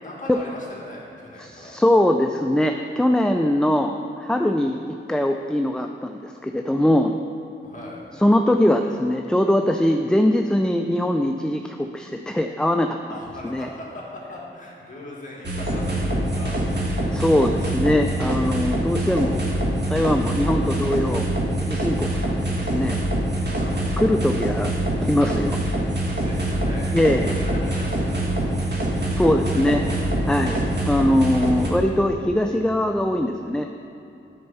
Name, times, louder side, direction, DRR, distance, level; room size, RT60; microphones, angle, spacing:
voice 1, 0.0-1.7 7.6-8.0 13.1-17.1 23.5-23.8 26.2-28.7 29.5-29.8 30.4-30.8, left 1 dB, 40° left, -4 dB, 1.8 m, -39 dB
voice 2, 1.4-4.8 5.1-7.1 8.2-13.0 13.4-13.7 17.1-19.4 19.9-21.3 21.6-23.0 24.0-24.7 25.0-25.6 26.9-27.3 29.1-29.8 30.3-30.6 30.9-33.7, left 1 dB, 5° left, 4 dB, 0.3 m, -21 dB
sound 1, 15.4-31.7, right 1 dB, 55° right, 1.5 m, -24 dB
9.6 x 4.5 x 5.5 m, 3.0 s
wide cardioid pair, 85°, 20 cm